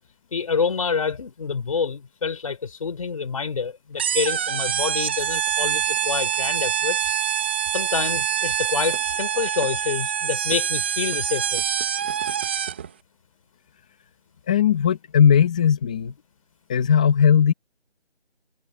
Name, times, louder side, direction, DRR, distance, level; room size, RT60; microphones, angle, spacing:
voice 1, 0.3-7.2 7.7-11.7, left 5 dB, 30° left, 5.0 m, -27 dB
sound 1, 4.0-12.9, right 9 dB, 10° right, 1.5 m, -25 dB
voice 2, 14.5-16.1 16.7-17.5, left 8 dB, 5° left, 1.3 m, -18 dB
figure-of-eight pair, 170°, 34 cm